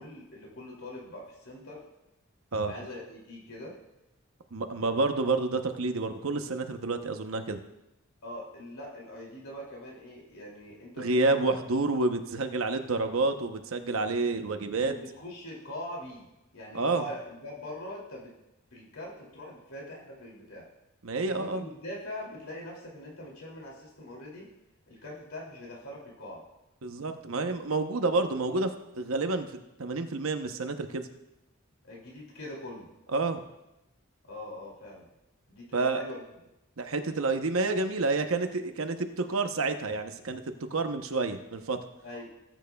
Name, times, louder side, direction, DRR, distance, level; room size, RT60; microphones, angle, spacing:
voice 1, 0.0-1.8 2.6-3.7 8.2-11.4 14.8-16.3 16.5-18.3 18.7-20.6 21.3-24.5 24.9-26.4 31.8-32.9 34.2-35.1 35.5-36.2 42.0-42.3, left 1 dB, 90° left, -3 dB, 2.7 m, -42 dB
voice 2, 4.5-7.6 11.0-14.9 16.7-17.0 21.0-21.6 26.8-28.7 29.0-31.1 33.1-33.4 35.7-36.0 36.8-40.4 40.7-41.8, right 3 dB, 80° right, 7 dB, 0.9 m, -29 dB
19.0 x 9.1 x 2.3 m, 0.94 s
head